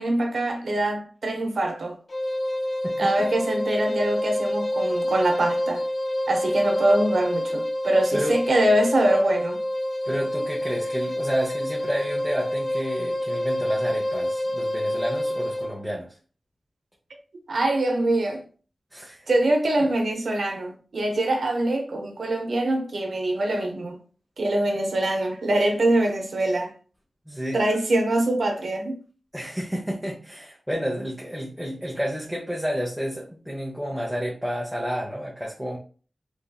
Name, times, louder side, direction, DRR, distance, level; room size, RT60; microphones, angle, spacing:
voice 1, 0.0-2.0 3.0-5.8 6.3-9.6 17.5-18.4 19.3-24.0 24.4-26.7 27.5-29.0, right 1 dB, 80° right, 0.6 m, -23 dB
sound 1, 2.1-15.8, left 1 dB, 50° left, 0.5 m, -27 dB
voice 2, 2.8-3.3 8.1-8.4 10.1-16.2 18.9-19.3 19.8-19.9 27.3-27.6 29.3-35.8, equal, ahead, 0.6 m, -30 dB
3.1 x 2.6 x 2.2 m
wide cardioid pair, 75°, 0 cm